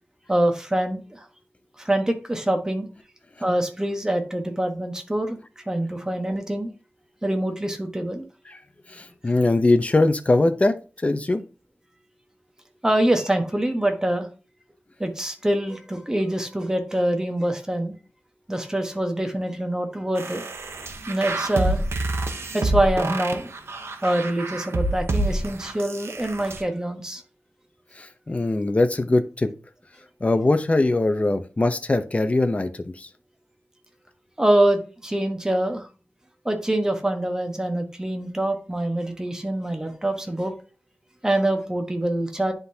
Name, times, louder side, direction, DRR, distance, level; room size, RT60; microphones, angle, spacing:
voice 1, 0.3-1.3 1.8-2.9 3.4-6.7 7.2-8.2 12.8-14.3 15.0-17.9 18.5-20.4 21.1-21.8 22.5-23.5 24.0-27.2 34.4-35.9 36.4-40.5 41.2-42.5, right 1 dB, 15° right, 5 dB, 1.2 m, -25 dB
voice 2, 8.9-10.8 11.0-11.4 28.0-29.5 30.2-33.1, left 2 dB, 30° left, 9 dB, 0.7 m, -21 dB
sound 1, 20.2-26.6, right 2 dB, 85° right, 0.8 m, -28 dB
10.0 x 3.8 x 2.8 m, 0.35 s
wide cardioid pair, 85°, 4 cm